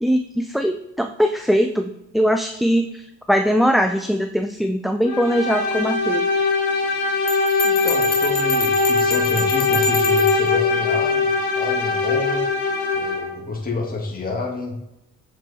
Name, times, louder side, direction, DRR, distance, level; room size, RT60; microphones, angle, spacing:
voice 1, 0.0-6.3, equal, ahead, 5 dB, 0.4 m, -21 dB
sound 1, 5.0-13.4, left 4 dB, 75° left, 1.7 m, -21 dB
Bell, 7.3-10.5, left 3 dB, 50° left, 1.9 m, -28 dB
voice 2, 7.6-12.5 12.9-14.8, left 3 dB, 30° left, 0 dB, 1.8 m, -28 dB
7.3 x 4.6 x 4.2 m, 0.88 s
cardioid pair, 90°, 30 cm